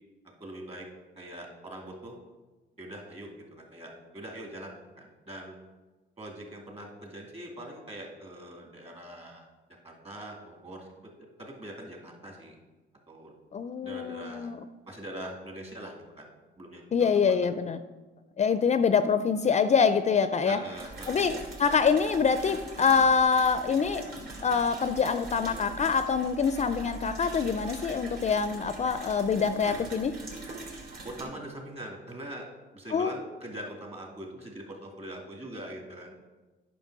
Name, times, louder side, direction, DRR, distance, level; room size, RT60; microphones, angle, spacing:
voice 1, 0.4-0.9 1.2-2.2 2.8-5.6 6.2-9.4 9.8-12.6 13.1-13.3 13.8-14.5 14.9-16.3 16.6-17.5 20.4-21.3 29.6-29.9 31.0-32.5 32.7-36.1, right 1 dB, 30° right, 1 dB, 2.4 m, -43 dB
voice 2, 13.5-14.6 16.9-17.8 18.4-20.6 21.1-24.0 24.4-30.1 32.9-33.1, left 6 dB, 35° left, 11 dB, 0.4 m, -25 dB
sound 1, 20.7-31.2, right 2 dB, 50° right, 2.7 m, -42 dB
9.2 x 6.0 x 4.8 m, 1.2 s
cardioid pair, 90°, 20 cm